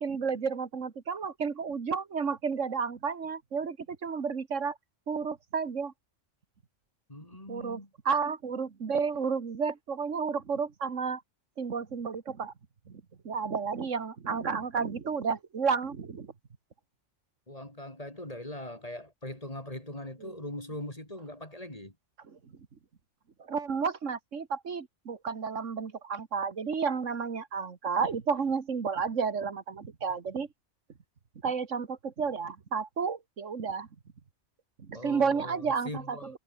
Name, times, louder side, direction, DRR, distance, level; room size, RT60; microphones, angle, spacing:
voice 1, 0.0-4.8 5.1-5.9 7.5-7.8 8.1-11.2 11.6-12.5 12.9-16.3 20.2-20.4 22.3-22.5 23.4-30.5 31.4-33.9 34.8-36.4, right 5 dB, 85° right, 2.1 m, -31 dB
voice 2, 7.1-7.9 17.5-21.9 34.9-36.4, left 1 dB, 30° left, 4.8 m, -41 dB
omnidirectional pair, 1.2 m